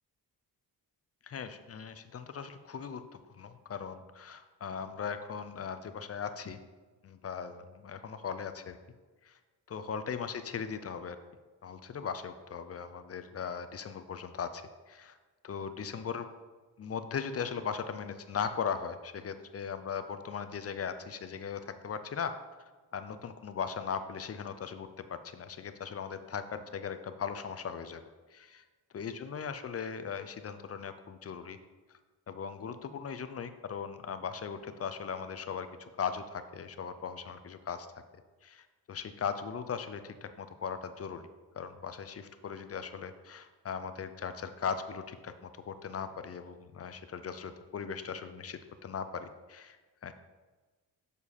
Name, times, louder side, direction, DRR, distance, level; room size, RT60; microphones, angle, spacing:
voice 1, 1.2-6.6 7.0-8.8 9.2-9.4 9.7-11.2 11.6-15.2 15.4-16.3 16.8-22.3 22.9-28.0 28.3-28.6 28.9-31.6 32.3-37.9 38.4-41.3 41.5-50.1, left 6 dB, 40° left, 10 dB, 0.5 m, -38 dB
7.2 x 6.8 x 4.2 m, 1.3 s
wide cardioid pair, 140°, 40 cm